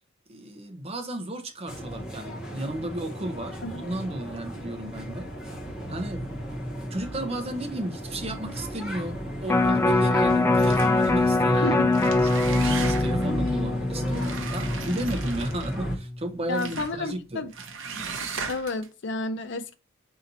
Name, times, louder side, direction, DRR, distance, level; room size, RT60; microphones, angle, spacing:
voice 1, 0.3-5.3 5.9-6.2 6.9-11.7 12.2-17.4, right 1 dB, 30° right, 0.7 m, -34 dB
sound 1, 1.7-16.0, equal, 5° right, 0.9 m, -33 dB
Electric guitar, 9.5-15.7 16.1-16.2, left 2 dB, 10° left, 0.3 m, -23 dB
sound 2, 10.6-11.2 11.8-13.3 14.1-15.8 16.5-17.0 17.5-18.9, right 5 dB, 70° right, 0.7 m, -37 dB
voice 2, 11.5-11.9 16.5-17.5 17.9-18.0 18.5-19.7, left 2 dB, 60° left, 0.6 m, -31 dB
4.0 x 2.8 x 3.9 m
head